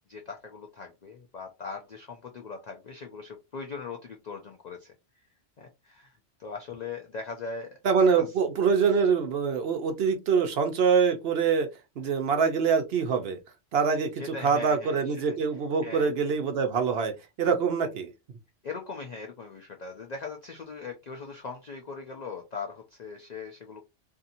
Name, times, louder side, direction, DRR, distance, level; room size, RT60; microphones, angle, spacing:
voice 1, 0.1-4.9 5.6-6.1 6.4-8.1 14.2-15.4 15.8-16.1 18.6-23.8, left 4 dB, 60° left, 0.4 m, -40 dB
voice 2, 7.8-11.7 12.0-13.4 13.7-17.1 17.4-18.1, right 6 dB, 65° right, 0.8 m, -24 dB
2.7 x 2.6 x 2.5 m
omnidirectional pair, 1.2 m